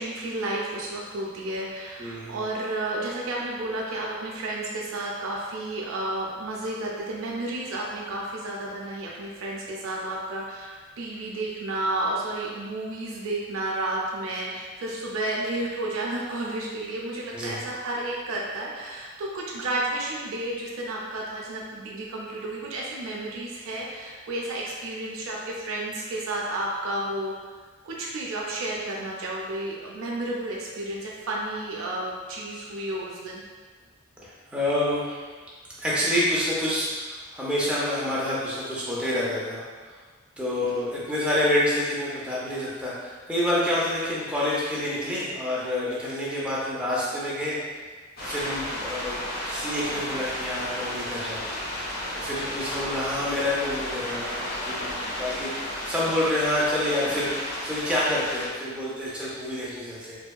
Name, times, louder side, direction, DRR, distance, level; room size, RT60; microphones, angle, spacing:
voice 1, 0.0-27.3 27.8-33.4 40.6-40.7, right 1 dB, 75° right, -3 dB, 0.4 m, -32 dB
voice 2, 2.0-2.4 17.3-17.7 34.2-35.3 35.8-40.0 40.4-47.6 48.2-51.4 52.2-55.5 55.8-60.2, left 1 dB, 5° right, -7 dB, 0.5 m, -28 dB
sound 1, 48.2-58.5, left 1 dB, 50° left, 0.5 m, -33 dB
2.7 x 2.2 x 2.2 m, 1.4 s
head